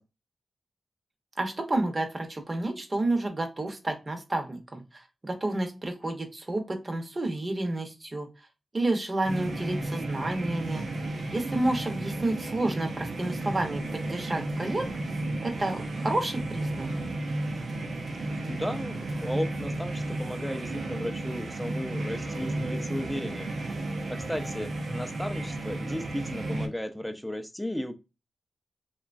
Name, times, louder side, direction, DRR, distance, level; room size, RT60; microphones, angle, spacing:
voice 1, 1.4-8.3 8.7-10.8 11.3-14.9 15.4-16.9, right 2 dB, 35° right, 5 dB, 0.8 m, -30 dB
sound 1, 9.2-26.7, right 2 dB, 70° right, 0.6 m, -33 dB
voice 2, 18.5-23.5 24.1-28.0, equal, 5° left, 8 dB, 0.5 m, -35 dB
2.9 x 2.3 x 2.5 m, 0.28 s
cardioid pair, 55°, 0 cm